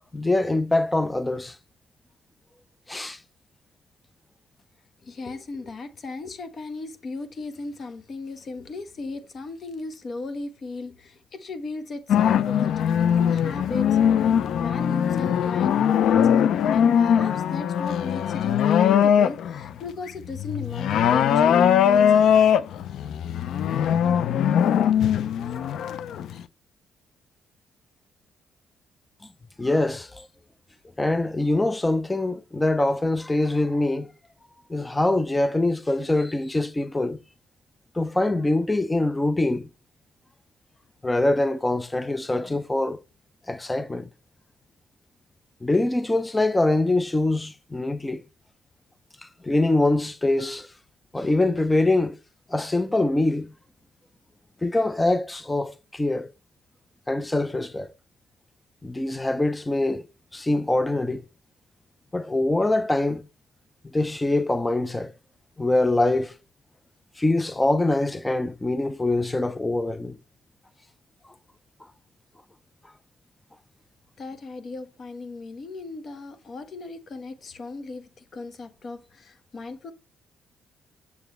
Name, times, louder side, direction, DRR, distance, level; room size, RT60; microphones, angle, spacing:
voice 1, 0.1-1.6 2.9-3.2 29.6-30.3 31.0-34.1 34.7-37.2 38.0-39.7 41.0-43.0 43.5-44.1 45.6-48.2 49.4-50.7 51.1-52.1 52.5-53.5 54.6-56.3 57.1-57.9 58.8-60.0 60.3-61.2 62.1-63.2 63.9-65.1 65.6-66.3 67.2-70.2, left 2 dB, 15° left, 0.6 m, -24 dB
voice 2, 5.0-14.0 14.6-16.3 16.7-22.3 74.2-79.9, left 3 dB, 50° left, 1.2 m, -37 dB
sound 1, 12.1-19.7 20.1-26.4, left 8 dB, 75° left, 0.5 m, -21 dB
7.0 x 6.9 x 3.1 m
cardioid pair, 90°, 0 cm